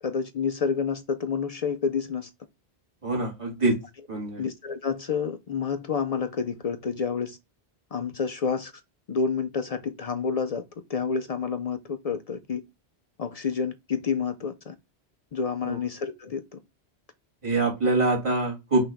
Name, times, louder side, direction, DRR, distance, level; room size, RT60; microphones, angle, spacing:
voice 1, 0.0-2.3 4.4-7.4 7.9-8.7 9.1-12.6 13.2-14.7 15.3-16.6, left 5 dB, 55° left, 0.4 m, -29 dB
voice 2, 3.0-3.8 4.1-4.4 15.6-15.8 17.4-18.9, right 2 dB, 30° right, 1.8 m, -24 dB
6.0 x 2.5 x 3.5 m
omnidirectional pair, 1.1 m